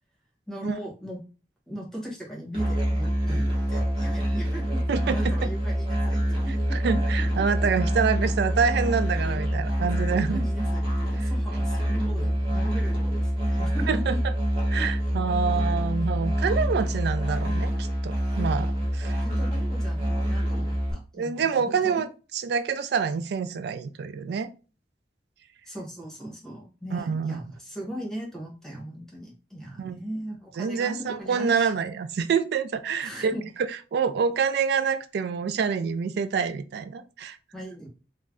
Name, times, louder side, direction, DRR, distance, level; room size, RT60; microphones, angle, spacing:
voice 1, 0.5-1.2 1.7-6.8 10.0-14.0 14.8-14.9 19.0-22.1 25.7-31.7 33.0-33.4 37.5-37.9, right 1 dB, 5° left, -2 dB, 0.8 m, -38 dB
Musical instrument, 2.5-20.9, equal, 30° right, 0.9 m, -26 dB
voice 2, 4.9-5.3 6.7-10.4 11.2-11.3 13.9-14.2 14.7-19.3 21.1-22.1 22.3-24.5 26.9-27.4 29.8-30.0 30.6-37.4, right 6 dB, 65° right, 11 dB, 0.3 m, -27 dB
2.5 x 2.1 x 3.4 m, 0.34 s
head